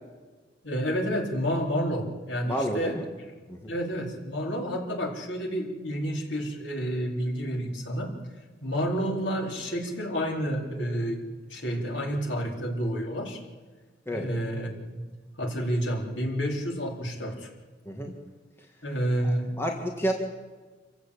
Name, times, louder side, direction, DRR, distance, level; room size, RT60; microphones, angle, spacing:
voice 1, 0.6-3.0 3.7-8.1 8.6-13.4 14.1-15.0 15.4-17.5 18.8-19.5, equal, 80° left, 0 dB, 4.4 m, -30 dB
voice 2, 2.5-3.0 3.5-3.7 14.1-14.3 17.9-18.1 19.2-20.1, equal, 15° left, 1 dB, 2.0 m, -30 dB
27.0 x 15.5 x 8.7 m, 1.4 s
head